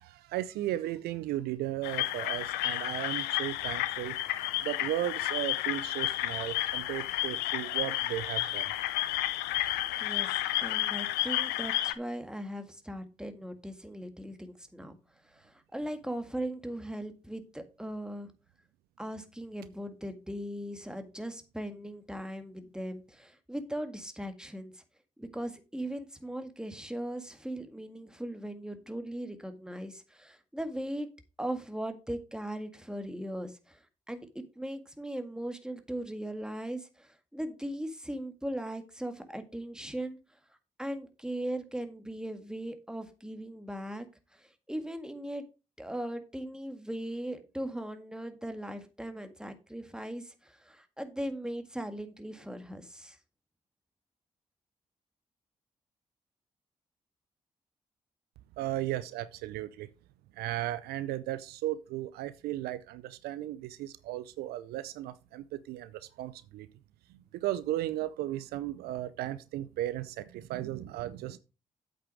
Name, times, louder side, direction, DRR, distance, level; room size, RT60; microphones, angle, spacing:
voice 1, 0.0-4.1 4.6-8.7 58.6-59.9 60.3-66.7 67.1-71.4, right 14 dB, 75° right, 0.5 m, -35 dB
sound 1, 1.8-11.9, left 15 dB, 80° left, 0.6 m, -31 dB
voice 2, 9.7-15.0 15.2-18.3 19.0-24.8 25.2-31.1 31.4-40.2 40.8-44.1 44.3-45.4 45.8-53.2, right 1 dB, 5° right, 1.8 m, -39 dB
8.2 x 6.1 x 4.9 m
hypercardioid pair, 40°, 17 cm